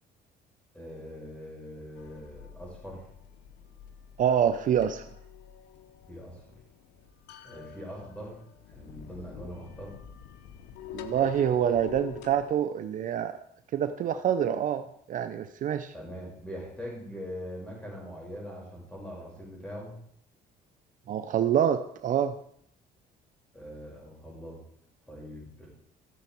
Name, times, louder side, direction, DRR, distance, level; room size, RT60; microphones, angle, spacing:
voice 1, 0.7-3.0 6.1-6.4 7.4-8.4 8.7-10.0 15.9-20.0 23.5-24.6 25.1-25.7, equal, 5° left, -3 dB, 5.5 m, -42 dB
sound 1, 2.0-12.5, left 9 dB, 85° left, 0.8 m, -46 dB
voice 2, 4.2-5.0 10.9-13.3 13.7-15.9 21.1-22.3, right 9 dB, 50° right, 9 dB, 0.6 m, -26 dB
14.0 x 6.9 x 4.5 m, 0.66 s
cardioid pair, 110°, 17 cm